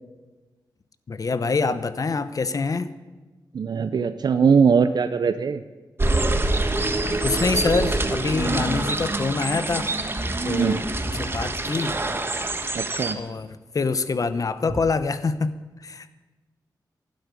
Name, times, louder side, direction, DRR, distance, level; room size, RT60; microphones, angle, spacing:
voice 1, 1.1-2.9 6.6-6.7 7.2-9.9 10.4-11.9 13.2-15.5 15.8-16.2, left 4 dB, 50° left, 12 dB, 1.0 m, -25 dB
voice 2, 3.5-5.6 10.5-10.8 12.7-13.2, right 6 dB, 65° right, 10 dB, 0.7 m, -21 dB
sound 1, 6.0-13.1, right 2 dB, 30° right, 1.4 m, -25 dB
sound 2, 10.0-12.6 13.2-13.6 13.9-14.0 14.7-14.9, equal, 5° left, 1.5 m, -35 dB
12.0 x 12.0 x 9.7 m, 1.2 s
cardioid pair, 75°, 8 cm